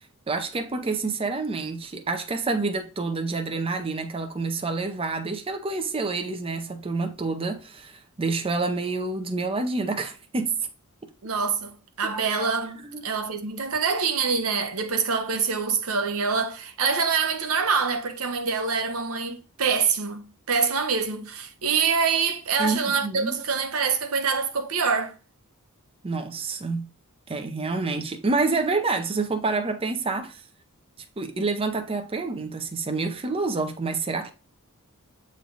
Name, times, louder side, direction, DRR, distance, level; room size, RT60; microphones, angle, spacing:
voice 1, 0.3-10.6 12.9-13.0 22.6-23.4 26.0-26.9 27.3-30.4 31.2-34.3, right 3 dB, 25° right, 0.6 m, -28 dB
voice 2, 11.2-20.2 20.5-25.1, right 5 dB, 70° right, 0.9 m, -25 dB
7.9 x 3.2 x 3.9 m
head